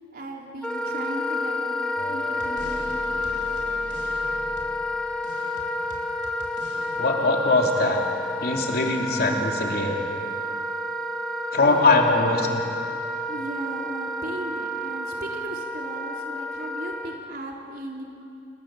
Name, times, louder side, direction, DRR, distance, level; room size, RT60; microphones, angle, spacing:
voice 1, 0.1-3.1 11.6-12.0 13.3-18.0, right 1 dB, 55° right, -1 dB, 4.1 m, -36 dB
Wind instrument woodwind instrument, 0.6-17.2, left 1 dB, 5° left, 1.4 m, -30 dB
sound 1, 2.0-7.0, left 1 dB, 85° left, 4.2 m, -42 dB
voice 2, 7.0-8.0 8.4-10.0 11.5-12.6, left 3 dB, 60° left, 1 dB, 3.1 m, -21 dB
28.0 x 21.0 x 7.6 m, 2.6 s
head